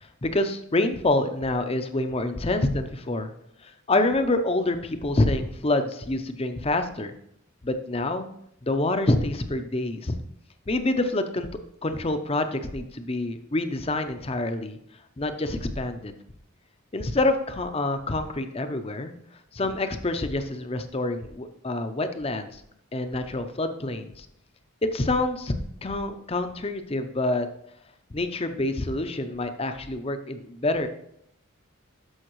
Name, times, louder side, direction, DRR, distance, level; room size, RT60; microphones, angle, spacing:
voice 1, 0.2-3.3 3.6-7.1 7.6-8.3 8.6-10.1 10.7-11.5 11.8-14.8 15.2-16.1 16.9-19.1 19.5-22.6 22.9-24.3 24.8-25.5 25.8-27.5 28.1-30.9, left 2 dB, 25° left, 8 dB, 0.6 m, -27 dB
13.0 x 5.6 x 3.1 m, 0.73 s
head